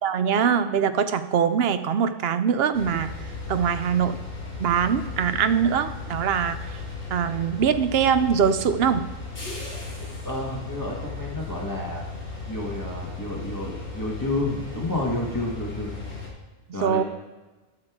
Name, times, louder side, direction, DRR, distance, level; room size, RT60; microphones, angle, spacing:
voice 1, 0.0-3.1 3.5-4.2 4.6-6.7 7.1-9.1 16.8-17.0, right 7 dB, 70° right, 11 dB, 0.8 m, -23 dB
sound 1, 2.7-16.3, left 3 dB, 60° left, 2.7 m, -36 dB
voice 2, 10.2-12.0 12.5-15.9 16.7-17.0, left 2 dB, 20° left, -3 dB, 1.5 m, -30 dB
12.5 x 6.5 x 3.6 m, 1.2 s
omnidirectional pair, 1.1 m